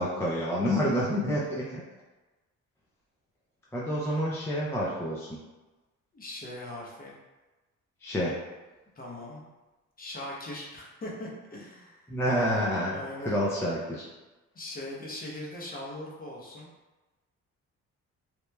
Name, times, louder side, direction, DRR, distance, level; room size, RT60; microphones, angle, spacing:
voice 1, 0.0-1.8 3.7-5.4 8.0-8.4 12.1-13.0 13.3-14.1, equal, 10° left, -6 dB, 0.3 m, -28 dB
voice 2, 6.1-7.2 9.0-9.5 10.0-12.1 12.9-13.4 14.5-16.7, left 1 dB, 30° left, -3 dB, 0.7 m, -40 dB
2.9 x 2.0 x 2.2 m, 1.1 s
cardioid pair, 90°, 30 cm